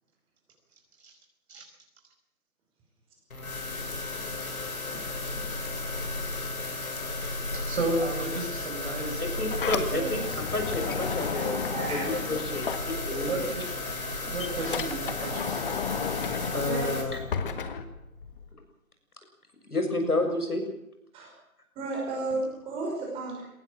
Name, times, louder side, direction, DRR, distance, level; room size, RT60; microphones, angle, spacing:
sound 1, 3.3-17.0, left 2 dB, 70° left, 7.1 m, -34 dB
voice 1, 7.5-9.2 9.9-10.2 13.3-13.7 14.3-15.8, right 2 dB, 45° right, 2 dB, 5.6 m, -33 dB
Sliding door, 9.1-13.5 13.8-18.5, left 6 dB, 35° left, 1.7 m, -34 dB
voice 2, 9.2-13.4 16.5-17.2 19.7-20.6, left 2 dB, 90° left, 5 dB, 7.0 m, -30 dB
voice 3, 11.7-12.1 13.1-13.2 16.7-17.0 21.1-21.3 21.8-23.5, right 3 dB, 10° right, -2 dB, 5.5 m, -33 dB
21.5 x 18.5 x 7.6 m, 0.79 s
figure-of-eight pair, 155°, 44 cm